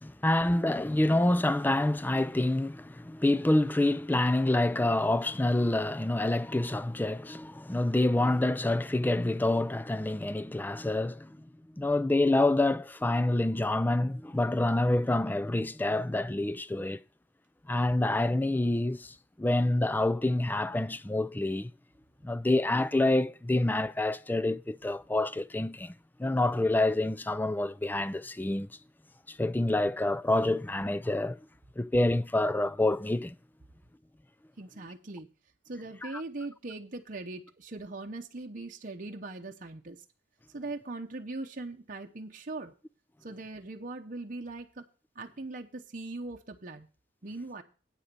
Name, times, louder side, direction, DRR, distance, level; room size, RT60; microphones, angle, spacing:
voice 1, 0.0-11.5 11.8-17.0 17.7-21.7 22.2-25.9 26.2-28.7 29.3-31.4 31.8-33.4 36.0-36.1, left 2 dB, 10° left, 0.4 m, -27 dB
voice 2, 34.6-35.3 35.7-40.0 40.5-42.7 43.2-44.9 45.1-46.9 47.2-47.6, right 2 dB, 45° right, 0.8 m, -40 dB
9.1 x 7.2 x 5.2 m
head